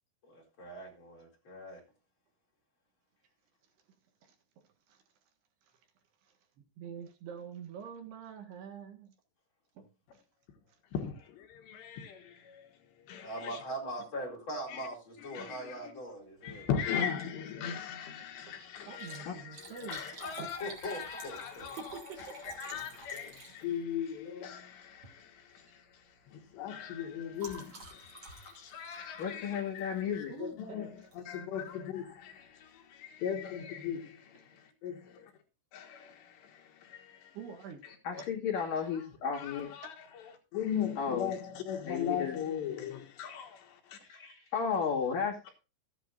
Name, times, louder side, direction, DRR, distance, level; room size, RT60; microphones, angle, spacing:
voice 1, 0.2-1.8 13.2-16.7 20.6-21.7 44.0-44.5, equal, 30° left, 4.4 m, -41 dB
voice 2, 6.8-9.1 9.8-9.9 10.1-10.2 18.5-18.6 18.9-20.0 20.4-20.5 21.6-22.4 30.3-30.9 37.3-37.8 39.8-39.9, right 7 dB, 70° right, 3.5 m, -46 dB
voice 3, 10.9-12.7 13.1-13.6 14.7-14.9 15.2-15.9 16.4-35.0 35.7-37.4 37.8-38.3 38.6-44.0, left 8 dB, 75° left, 3.7 m, -39 dB
Liquid, 17.2-17.4 17.8-17.9 18.8-23.9 24.9-25.2 25.5-25.8 26.1-30.2 31.1-31.4 31.9-32.0 32.2-32.3, right 2 dB, 35° right, 2.7 m, -50 dB
voice 4, 29.2-30.3 38.0-39.7 41.0-41.3 41.9-42.3 44.5-45.5, left 6 dB, 55° left, 3.4 m, -33 dB
14.5 x 10.5 x 2.6 m
omnidirectional pair, 5.1 m